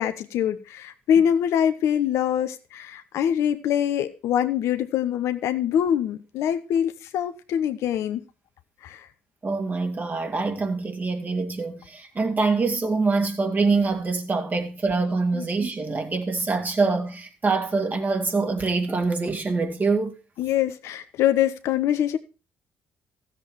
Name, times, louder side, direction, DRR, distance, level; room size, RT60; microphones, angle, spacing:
voice 1, 0.0-8.2 8.8-9.1 15.3-15.5 20.4-22.2, left 9 dB, 75° left, 0.9 m, -24 dB
voice 2, 9.4-20.1, right 3 dB, 35° right, 2.6 m, -25 dB
14.0 x 7.6 x 4.7 m
hypercardioid pair, 55°, 5 cm